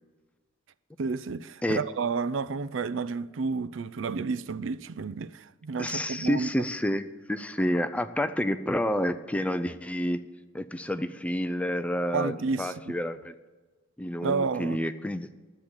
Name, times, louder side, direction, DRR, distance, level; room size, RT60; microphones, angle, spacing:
voice 1, 1.0-6.5 12.1-12.9 14.2-14.8, right 4 dB, 65° right, 0.5 m, -31 dB
voice 2, 5.8-10.2 10.5-13.3 14.0-15.3, equal, 5° left, 0.4 m, -29 dB
11.0 x 8.2 x 8.8 m
head